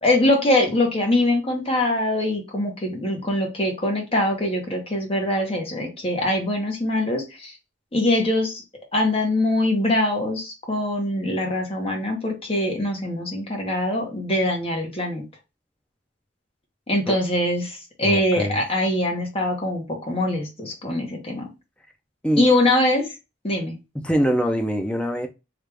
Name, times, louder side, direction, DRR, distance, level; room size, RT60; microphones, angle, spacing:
voice 1, 0.0-7.5 7.9-8.6 8.9-15.2 16.9-21.5 22.4-23.1 23.4-23.7, left 1 dB, 30° left, 0.9 m, -23 dB
voice 2, 18.0-18.6 22.2-22.4 24.0-25.3, equal, 5° left, 0.4 m, -23 dB
3.3 x 2.4 x 3.2 m
head